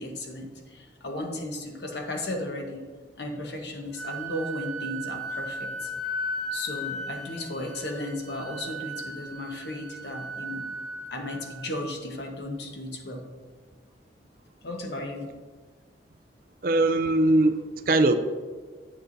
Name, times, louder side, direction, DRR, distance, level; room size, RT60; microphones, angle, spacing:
voice 1, 0.0-2.8 3.2-5.9 6.5-10.6 11.1-13.2 14.6-15.3, left 1 dB, 70° left, 2 dB, 1.1 m, -35 dB
Wind instrument woodwind instrument, 3.9-11.7, equal, ahead, 2.2 m, -36 dB
voice 2, 16.6-18.2, right 2 dB, 50° right, 9 dB, 0.4 m, -21 dB
9.0 x 7.6 x 2.7 m, 1.5 s
head